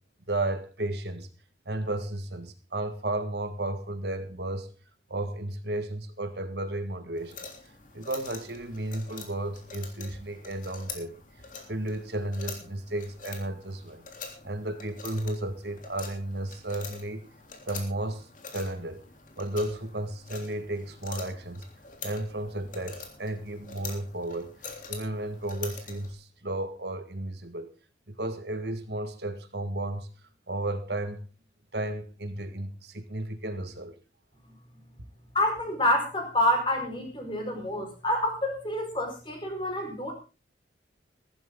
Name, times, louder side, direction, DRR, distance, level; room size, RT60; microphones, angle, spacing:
voice 1, 0.3-1.3 1.7-4.7 5.1-7.4 7.9-11.2 11.7-14.0 14.4-17.3 17.7-18.3 18.5-19.0 19.4-21.6 22.0-24.5 24.9-27.7 28.2-30.1 30.5-31.2 31.7-33.9, right 1 dB, 65° right, 9 dB, 1.8 m, -33 dB
sound 1, 7.2-26.1, left 5 dB, 45° left, 3.3 m, -45 dB
voice 2, 35.3-40.1, left 1 dB, 25° left, 3 dB, 5.0 m, -28 dB
15.5 x 14.0 x 3.8 m, 0.33 s
head